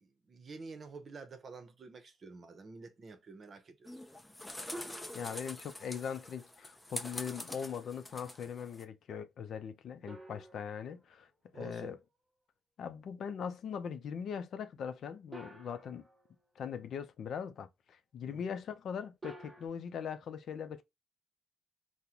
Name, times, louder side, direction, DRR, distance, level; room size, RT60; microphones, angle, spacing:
voice 1, 0.0-3.9 11.5-12.0 18.2-18.4, right 4 dB, 45° right, 0.8 m, -49 dB
sound 1, 3.9-8.8, left 1 dB, 10° left, 0.6 m, -45 dB
sound 2, 4.7-5.8 10.1-11.6 15.3-16.5 19.2-19.7, right 1 dB, 15° right, 1.1 m, -50 dB
voice 2, 5.1-11.3 11.5-12.0 12.8-16.0 16.6-20.8, left 7 dB, 65° left, 0.5 m, -40 dB
3.7 x 2.1 x 2.9 m
cardioid pair, 90°, 0 cm